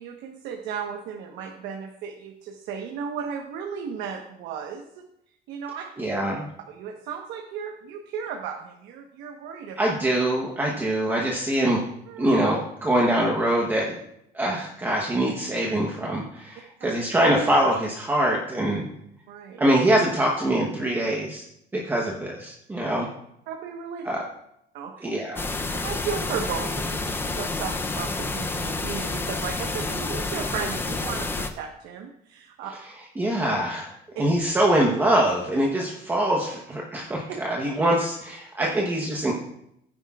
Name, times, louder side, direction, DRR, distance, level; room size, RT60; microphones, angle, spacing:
voice 1, 0.0-4.9 5.5-5.8 6.7-9.8 12.1-12.3 16.8-16.9 19.3-19.6 23.5-24.1 24.7-25.0 25.8-32.7 38.6-38.7, right 7 dB, 80° right, 2 dB, 1.1 m, -35 dB
voice 2, 6.0-6.5 9.8-11.8 12.2-14.0 14.3-18.9 19.6-21.4 21.7-23.1 24.0-24.2 25.0-25.4 33.2-39.3, right 1 dB, 10° right, -2 dB, 1.0 m, -24 dB
sound 1, 25.4-31.5, left 3 dB, 10° left, 0.5 m, -29 dB
16.0 x 9.6 x 2.4 m, 0.77 s
cardioid pair, 175°, 18 cm